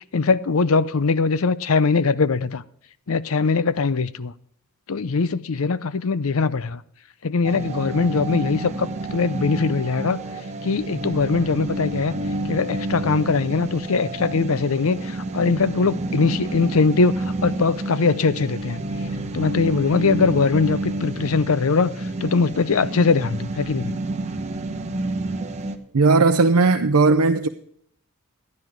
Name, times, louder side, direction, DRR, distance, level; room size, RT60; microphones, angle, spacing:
voice 1, 0.1-2.6 3.1-4.3 4.9-6.8 7.2-10.2 10.6-12.1 12.5-18.8 19.3-21.9 22.2-24.0, left 4 dB, 65° left, 0.6 m, -21 dB
sound 1, 7.4-25.8, right 2 dB, 30° right, 1.0 m, -29 dB
voice 2, 25.9-27.5, right 3 dB, 75° right, 0.6 m, -17 dB
12.0 x 11.0 x 4.6 m
head